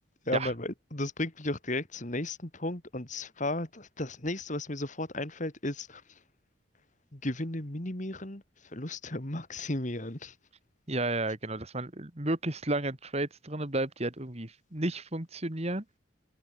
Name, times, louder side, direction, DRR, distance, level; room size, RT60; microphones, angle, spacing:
voice 1, 0.2-6.2 7.1-10.4, left 1 dB, 40° left, 2.7 m, -34 dB
voice 2, 10.9-15.8, right 2 dB, 30° right, 2.2 m, -32 dB
head